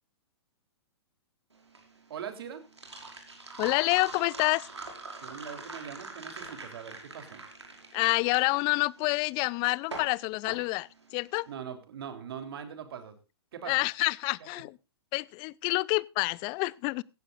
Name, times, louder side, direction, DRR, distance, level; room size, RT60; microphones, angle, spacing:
sound 1, 1.5-11.4, right 3 dB, 90° right, 5.5 m, -44 dB
voice 1, 2.1-2.6 5.2-7.4 11.5-13.2 13.5-13.8, right 8 dB, 60° right, 3.5 m, -41 dB
voice 2, 3.6-4.7 7.9-11.5 13.7-14.8 15.1-17.0, left 26 dB, 30° left, 0.6 m, -28 dB
16.5 x 16.0 x 2.5 m
hypercardioid pair, 120°, 14 cm